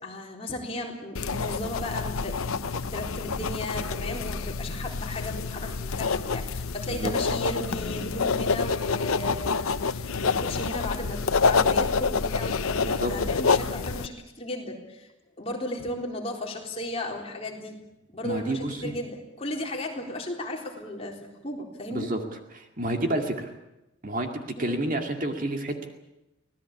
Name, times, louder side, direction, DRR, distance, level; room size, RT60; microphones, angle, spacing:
voice 1, 0.0-15.1 15.4-17.8 18.1-22.1 24.6-24.8, left 1 dB, 30° left, 0 dB, 4.0 m, -35 dB
sound 1, 1.1-14.1, left 4 dB, 90° left, 0.8 m, -27 dB
voice 2, 18.2-18.8 21.9-22.2 22.5-23.5 24.0-24.3 24.6-25.9, right 1 dB, 40° right, 4 dB, 2.2 m, -29 dB
25.0 x 18.0 x 8.5 m, 0.93 s
head